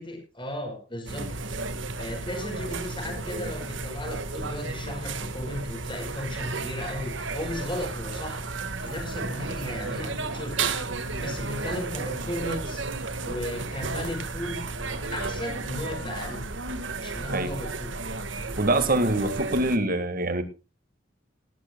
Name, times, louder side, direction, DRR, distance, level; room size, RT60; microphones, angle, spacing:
voice 1, 0.0-1.7 2.0-8.5 8.8-10.6 11.2-12.8 13.2-14.6 15.1-16.4 17.0-17.9, left 1 dB, 25° left, 5.6 m, -35 dB
sound 1, 1.1-19.8, right 3 dB, 75° right, 1.7 m, -33 dB
voice 2, 18.6-20.4, right 2 dB, 50° right, 2.0 m, -24 dB
19.5 x 14.0 x 2.3 m
head